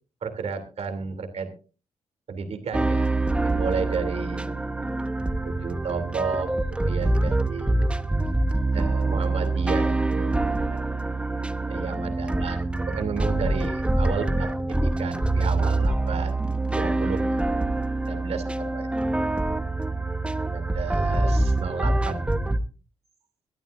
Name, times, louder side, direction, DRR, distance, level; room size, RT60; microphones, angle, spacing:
voice 1, 0.2-1.5 2.3-4.5 5.4-7.7 8.7-10.3 10.7-10.8 11.7-12.6 12.9-16.3 16.8-17.3 18.1-18.9 20.5-22.3, right 5 dB, 60° right, 8 dB, 2.8 m, -32 dB
sound 1, 2.7-22.6, right 2 dB, 10° right, 0.7 m, -25 dB
22.0 x 13.0 x 2.5 m, 0.35 s
wide cardioid pair, 170°, 12 cm